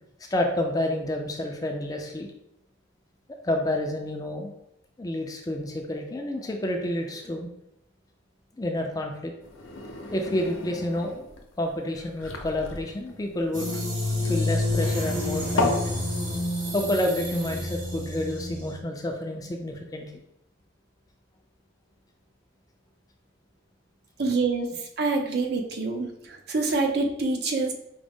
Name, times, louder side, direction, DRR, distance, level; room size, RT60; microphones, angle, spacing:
voice 1, 0.3-2.3 3.4-4.5 5.0-7.5 8.6-9.3 10.1-13.8 14.2-15.9 16.7-20.1, left 1 dB, 20° left, 2 dB, 0.4 m, -29 dB
sound 1, 9.4-15.9, left 2 dB, 90° left, 0.7 m, -33 dB
sound 2, 13.5-18.7, left 1 dB, 70° right, 1.3 m, -28 dB
voice 2, 24.2-27.7, right 3 dB, 55° right, 3 dB, 0.6 m, -26 dB
4.9 x 2.0 x 3.5 m, 0.81 s
head